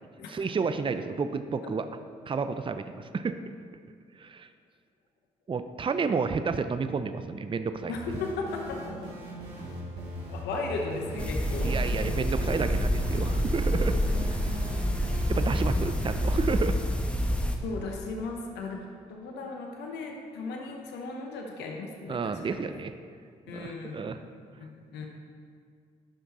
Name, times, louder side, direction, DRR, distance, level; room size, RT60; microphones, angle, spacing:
voice 1, 0.3-1.9 2.3-3.4 4.2-4.5 5.5-8.0 11.6-14.7 15.3-16.8 22.1-22.9 23.5-24.2, right 5 dB, 30° right, 10 dB, 0.5 m, -31 dB
voice 2, 7.9-9.1 10.3-11.7 13.9-14.0 17.6-22.6 23.5-24.2 24.6-25.1, left 3 dB, 80° left, 2 dB, 0.9 m, -36 dB
sound 1, 7.9-16.6, right 1 dB, 70° right, 2.3 m, -40 dB
sound 2, 11.2-17.6, equal, 5° left, 1.0 m, -27 dB
10.0 x 5.8 x 4.2 m, 2.1 s
hypercardioid pair, 45°, 17 cm